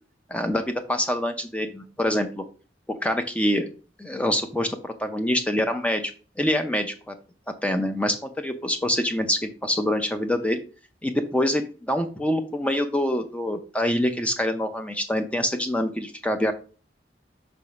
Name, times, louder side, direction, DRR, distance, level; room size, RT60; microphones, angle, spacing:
voice 1, 0.3-2.4 2.9-3.7 4.0-6.1 6.4-7.1 7.5-10.6 11.0-16.5, left 1 dB, 5° left, 7 dB, 0.5 m, -25 dB
5.6 x 3.5 x 5.2 m, 0.37 s
head